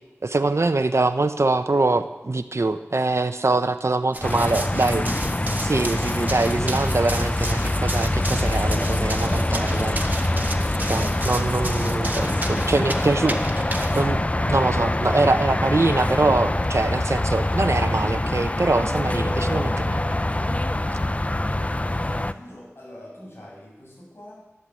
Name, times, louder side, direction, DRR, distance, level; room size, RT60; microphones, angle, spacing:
voice 1, 0.2-5.1 5.6-10.0 10.9-13.4 13.9-14.2 14.5-20.0, right 2 dB, 70° right, 10 dB, 0.8 m, -23 dB
Run, 4.1-14.1, right 1 dB, 35° right, 1.5 m, -33 dB
sound 1, 4.2-22.3, left 1 dB, 30° left, 0.6 m, -24 dB
voice 2, 21.6-24.6, left 1 dB, 55° left, -3 dB, 7.4 m, -45 dB
14.0 x 11.5 x 8.9 m, 1.0 s
wide cardioid pair, 50°, 5 cm